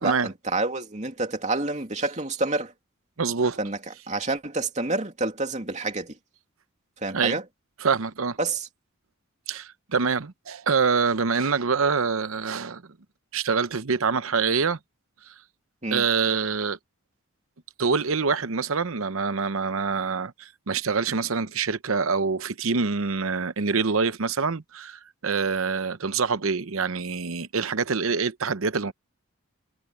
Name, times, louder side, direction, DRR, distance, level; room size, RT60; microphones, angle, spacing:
voice 1, 0.0-2.7 3.6-3.8 4.1-6.2 7.0-7.4 8.4-8.7 15.8-16.0, right 2 dB, 35° right, 2.8 m, -28 dB
voice 2, 3.2-3.6 7.1-7.4 7.8-8.4 9.5-12.9 13.3-14.8 15.9-16.8 17.8-28.9, right 5 dB, 75° right, 0.8 m, -25 dB
head